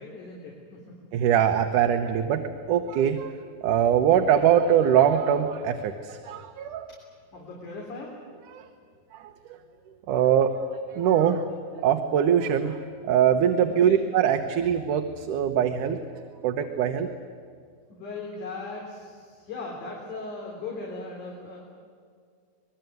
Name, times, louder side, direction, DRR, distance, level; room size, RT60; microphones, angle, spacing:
voice 1, 0.0-1.0 7.3-8.2 13.8-14.0 17.9-21.6, left 3 dB, 80° left, -2 dB, 5.0 m, -38 dB
voice 2, 1.1-3.4 3.6-6.9 8.5-8.7 9.1-9.6 10.1-11.5 11.8-12.8 13.1-16.0 16.4-17.1, right 9 dB, 90° right, 5 dB, 2.6 m, -23 dB
26.0 x 20.5 x 9.4 m, 2.1 s
omnidirectional pair, 3.5 m